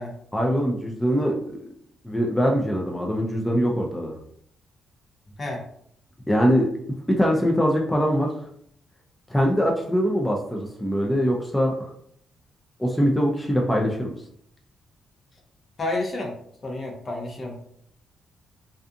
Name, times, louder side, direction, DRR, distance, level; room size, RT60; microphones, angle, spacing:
voice 1, 0.3-1.3 2.0-4.1 6.3-6.7 7.1-8.3 9.3-11.9 12.8-14.2, equal, 10° left, -1 dB, 0.5 m, -22 dB
voice 2, 15.8-16.3 16.6-17.6, left 2 dB, 45° left, 1 dB, 0.7 m, -30 dB
2.5 x 2.3 x 2.5 m, 0.68 s
supercardioid pair, 65°, 0 cm